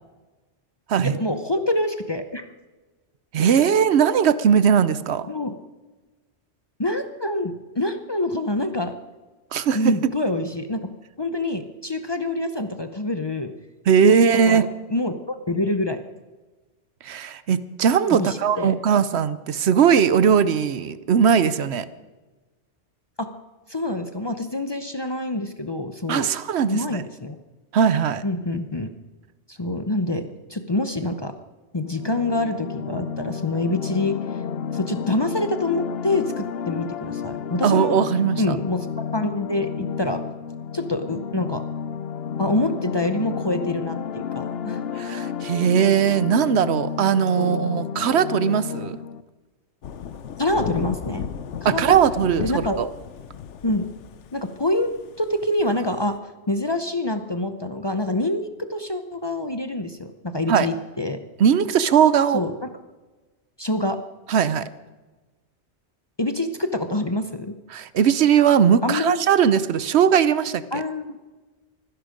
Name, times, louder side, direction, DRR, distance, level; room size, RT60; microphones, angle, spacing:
voice 1, 1.2-2.5 5.3-5.6 6.8-8.9 9.7-13.5 14.0-14.1 14.5-14.6 14.9-16.0 18.1-18.8 23.2-23.3 23.7-26.3 26.7-27.4 28.2-28.9 29.5-31.3 31.7-34.2 34.7-37.9 38.4-38.9 39.1-40.2 40.7-41.6 42.4-44.8 47.4-47.6 50.4-51.2 51.6-52.0 52.4-52.8 53.6-53.9 54.3-54.9 55.2-56.2 56.5-61.2 62.3-62.7 63.6-64.0 66.2-67.5 68.8-69.2 70.7-71.2, left 1 dB, 25° left, 8 dB, 0.7 m, -26 dB
voice 2, 3.3-5.3 9.5-10.0 13.9-14.7 17.0-21.9 26.1-27.0 27.7-28.2 37.6-38.6 45.0-49.0 51.6-52.9 60.5-60.7 61.4-62.4 64.3-64.7 67.7-70.8, right 7 dB, 70° right, 15 dB, 0.9 m, -19 dB
sound 1, 31.9-49.2, left 7 dB, 60° left, 0.9 m, -31 dB
Thunder / Rain, 49.8-56.2, left 7 dB, 90° left, 1.1 m, -34 dB
24.5 x 10.5 x 5.1 m, 1.2 s
omnidirectional pair, 1.2 m